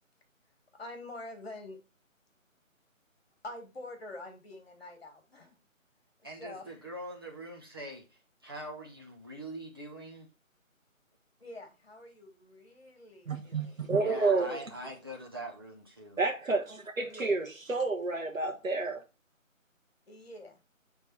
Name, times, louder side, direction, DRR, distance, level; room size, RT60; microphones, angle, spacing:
voice 1, 0.7-1.8 3.4-5.6 6.4-6.8 11.4-14.5 17.1-17.4 20.1-20.6, left 2 dB, 45° left, 1.8 m, -46 dB
voice 2, 6.2-10.3 14.0-16.2, right 1 dB, 20° right, 0.9 m, -43 dB
voice 3, 13.3-14.6 16.2-19.0, right 3 dB, 75° right, 1.3 m, -30 dB
8.5 x 3.6 x 4.5 m
figure-of-eight pair, 160°, 41 cm